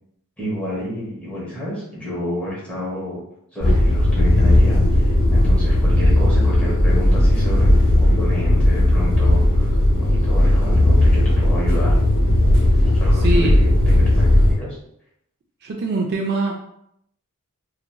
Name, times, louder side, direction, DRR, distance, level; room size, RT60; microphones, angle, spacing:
voice 1, 0.4-3.2 3.5-12.0 12.9-14.8, left 1 dB, 5° left, -7 dB, 1.0 m, -30 dB
sound 1, 3.6-14.5, left 1 dB, 60° left, 0.9 m, -16 dB
voice 2, 13.2-13.5 15.6-16.6, right 2 dB, 50° right, 0 dB, 0.3 m, -23 dB
2.9 x 2.5 x 2.2 m, 0.75 s
head